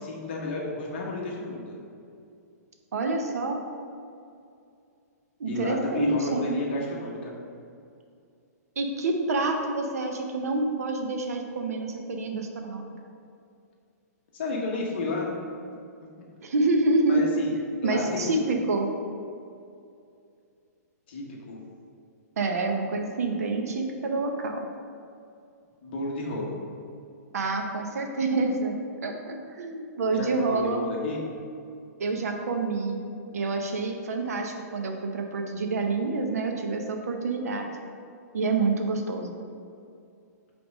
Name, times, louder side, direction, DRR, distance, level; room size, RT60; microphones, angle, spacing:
voice 1, 0.0-1.8 5.5-7.3 14.3-15.3 17.1-17.5 17.8-18.4 21.1-21.6 25.8-26.6 30.1-31.2, left 2 dB, 40° left, -2 dB, 1.1 m, -32 dB
voice 2, 2.9-3.6 5.4-6.6 8.8-12.9 16.4-17.2 17.5-18.9 22.4-24.7 27.3-28.8 29.0-30.9 32.0-33.0 33.3-37.8 38.3-39.3, right 3 dB, 65° right, 3 dB, 0.8 m, -27 dB
6.0 x 3.5 x 5.3 m, 2.5 s
hypercardioid pair, 175°, 9 cm